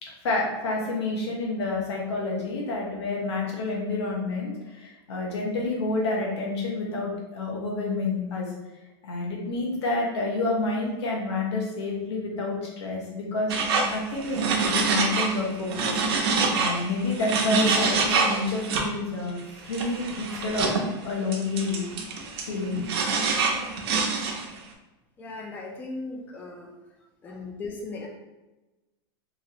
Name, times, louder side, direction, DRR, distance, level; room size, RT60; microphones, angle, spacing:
voice 1, 0.0-8.5 9.0-13.5 13.8-20.7 21.0-21.9 22.4-23.0 27.3-27.4, left 3 dB, 85° left, -2 dB, 1.0 m, -29 dB
sound 1, 13.5-15.4 15.7-18.8 19.7-20.8 21.3-24.6, right 4 dB, 70° right, 0.6 m, -26 dB
voice 2, 25.2-26.7 27.2-28.1, left 3 dB, 15° left, -1 dB, 0.4 m, -37 dB
3.0 x 2.5 x 2.8 m, 1.1 s
supercardioid pair, 155°, 14 cm